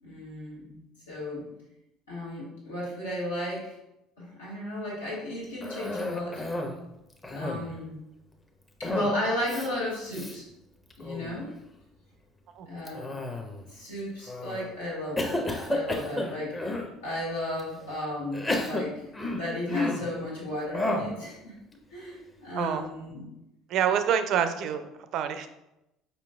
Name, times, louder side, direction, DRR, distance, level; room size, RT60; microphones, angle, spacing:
voice 1, 0.0-1.5 2.1-3.7 4.2-6.4 7.3-8.0 8.8-10.4 11.0-11.5 12.6-13.0 13.7-15.4 15.7-16.5 17.0-21.5 21.9-23.2, left 1 dB, 80° left, -7 dB, 1.4 m, -34 dB
Cough, 5.6-6.8 7.1-7.8 8.8-9.2 9.5-9.7 10.1-10.3 10.9-11.3 12.9-13.7 14.3-14.6 15.2-16.9 17.6-17.7 18.3-20.1 20.7-21.2, left 2 dB, 15° left, 0.6 m, -32 dB
voice 2, 23.7-25.5, right 8 dB, 55° right, 9 dB, 0.4 m, -27 dB
4.9 x 3.0 x 2.3 m, 0.87 s
figure-of-eight pair, 60°, 0 cm